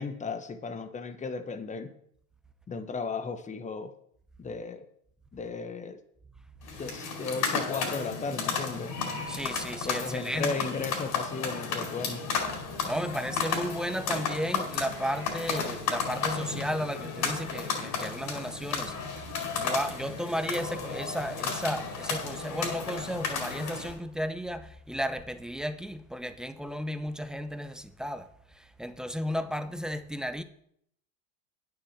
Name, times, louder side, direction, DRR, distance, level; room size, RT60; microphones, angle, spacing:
voice 1, 0.0-1.9 2.7-3.9 4.4-4.9 5.3-6.0 6.8-8.9 9.8-12.2, left 4 dB, 15° left, 1.1 m, -35 dB
sound 1, 6.6-24.0, left 5 dB, 40° left, 4.4 m, -33 dB
voice 2, 9.3-10.5 12.8-28.3 28.5-30.4, equal, ahead, 0.5 m, -34 dB
9.2 x 7.3 x 7.4 m
hypercardioid pair, 120°, 46 cm